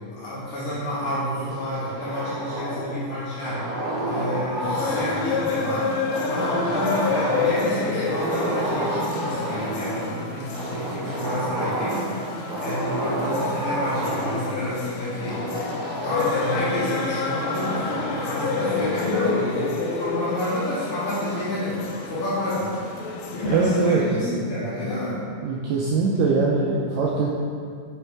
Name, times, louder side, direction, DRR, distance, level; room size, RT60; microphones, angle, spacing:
voice 1, 0.0-3.8 4.1-5.9 6.3-12.1 12.6-15.4 16.0-21.8 22.0-22.7 23.3-25.2, left 1 dB, 65° left, -11 dB, 1.4 m, -29 dB
sound 1, 1.5-3.0 3.4-5.5 6.1-7.8 8.1-10.1 10.5-12.1 12.5-14.5 15.3-16.8 17.2-19.3, right 1 dB, 65° right, 1.9 m, -30 dB
sound 2, 4.6-23.9, left 4 dB, 80° left, 2.0 m, -29 dB
voice 2, 23.5-24.2 25.4-27.3, right 4 dB, 85° right, -4 dB, 1.9 m, -22 dB
6.9 x 3.3 x 4.5 m, 2.2 s
omnidirectional pair, 4.3 m